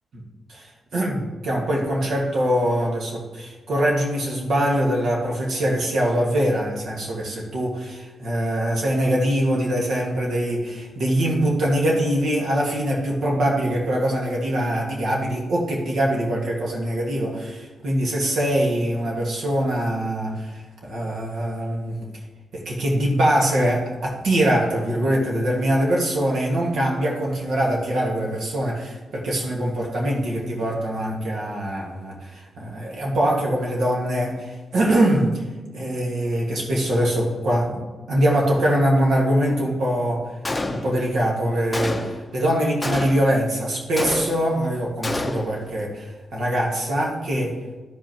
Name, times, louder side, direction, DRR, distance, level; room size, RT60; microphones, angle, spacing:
voice 1, 0.5-22.0 22.5-35.4 35.7-40.2 40.7-47.5, right 1 dB, 70° right, -3 dB, 1.8 m, -23 dB
Gunshot gunfire, 40.4-41.2 41.7-42.3 42.8-43.4 44.0-44.6 45.0-45.6, left 2 dB, 15° left, 0.8 m, -28 dB
14.0 x 5.3 x 3.0 m, 1.3 s
cardioid pair, 125°, 0 cm